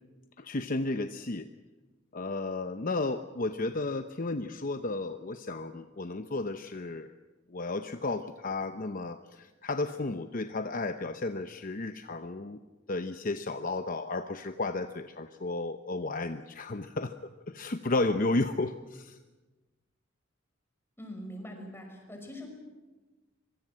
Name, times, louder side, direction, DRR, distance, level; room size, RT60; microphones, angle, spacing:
voice 1, 0.4-1.5 2.1-7.1 7.5-12.6 12.9-19.2, left 2 dB, 45° left, 8 dB, 0.8 m, -33 dB
voice 2, 21.0-22.5, equal, 10° left, 2 dB, 5.9 m, -43 dB
25.0 x 23.0 x 7.6 m, 1.2 s
head